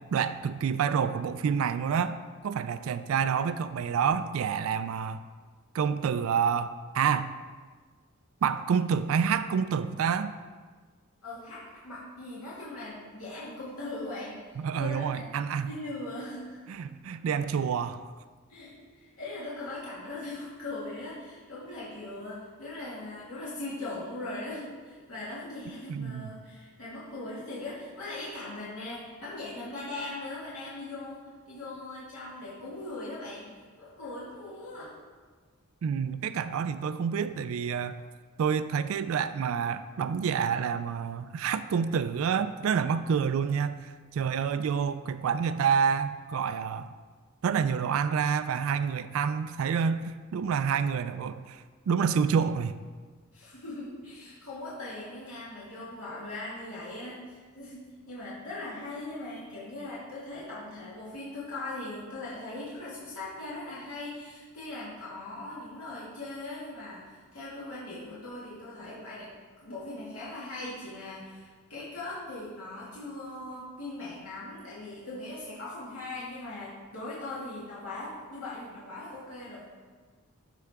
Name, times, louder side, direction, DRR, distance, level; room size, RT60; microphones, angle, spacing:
voice 1, 0.1-2.2 2.4-5.2 5.7-7.3 8.4-10.3 14.6-15.7 16.7-18.0 25.9-26.3 35.8-38.0 38.4-46.9 47.4-52.8, right 7 dB, 70° right, 12 dB, 0.3 m, -28 dB
voice 2, 11.2-15.3 15.7-16.6 18.5-33.5 33.8-35.0 53.3-69.3 69.6-79.7, left 2 dB, 80° left, -8 dB, 1.9 m, -40 dB
12.0 x 4.8 x 3.5 m, 1.5 s
head